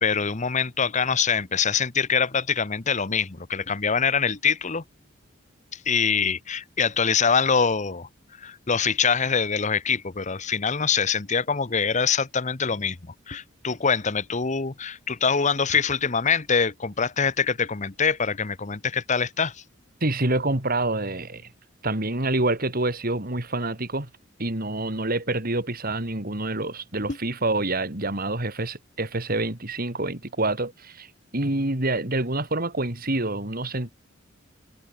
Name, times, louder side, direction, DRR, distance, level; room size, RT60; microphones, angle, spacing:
voice 1, 0.0-4.8 5.8-8.1 8.4-13.0 13.3-19.6, left 6 dB, 35° left, 1.0 m, -24 dB
voice 2, 20.0-21.5 21.8-24.1 24.4-31.1 31.3-33.9, right 2 dB, 45° right, 3.2 m, -27 dB
head